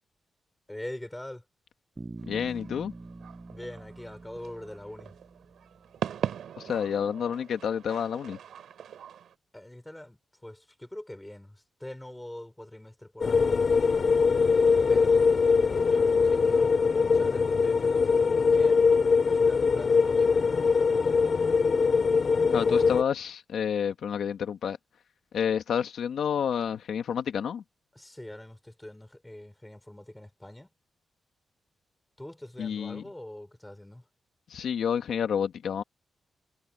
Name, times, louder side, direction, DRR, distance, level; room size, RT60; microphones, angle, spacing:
voice 1, 0.7-1.4 3.5-5.1 9.5-14.1 14.9-15.5 15.8-18.9 19.2-21.4 22.6-22.9 27.9-30.7 32.2-34.0, left 1 dB, 10° left, 6.1 m, -44 dB
Bass guitar, 2.0-6.0, right 3 dB, 25° right, 6.6 m, -45 dB
sound 1, 2.2-9.3, right 9 dB, 90° right, 3.6 m, -40 dB
voice 2, 2.3-2.9 6.6-8.4 22.5-24.8 25.3-27.6 32.6-33.0 34.5-35.8, left 8 dB, 80° left, 1.7 m, -29 dB
sound 2, 13.2-23.0, left 5 dB, 45° left, 0.4 m, -22 dB
wide cardioid pair, 115°, 0 cm